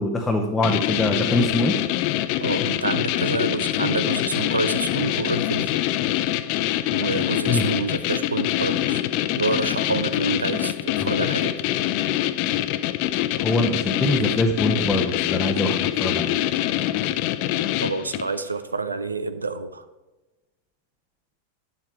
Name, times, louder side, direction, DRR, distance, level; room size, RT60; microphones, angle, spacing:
voice 1, 0.0-1.7 7.5-7.7 11.0-11.1 13.4-16.3, left 1 dB, 10° left, 1 dB, 0.9 m, -23 dB
sound 1, 0.6-18.4, left 14 dB, 45° left, 0.5 m, -25 dB
voice 2, 2.4-5.7 6.9-9.0 9.3-11.6 17.8-19.9, right 3 dB, 80° right, 11 dB, 0.6 m, -27 dB
9.6 x 7.4 x 4.7 m, 1.1 s
figure-of-eight pair, 90°, 0 cm